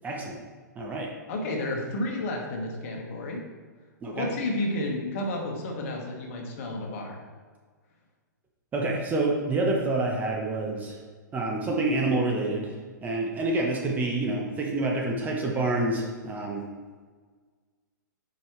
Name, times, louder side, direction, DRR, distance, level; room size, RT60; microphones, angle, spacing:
voice 1, 0.0-0.4 0.8-1.1 4.0-4.3 8.7-11.0 11.3-12.7 13.0-16.7, right 2 dB, 15° right, -1 dB, 1.1 m, -27 dB
voice 2, 1.3-3.4 4.1-7.2, left 1 dB, 45° left, 1 dB, 1.6 m, -31 dB
8.7 x 5.2 x 3.2 m, 1.5 s
figure-of-eight pair, 115°, 10 cm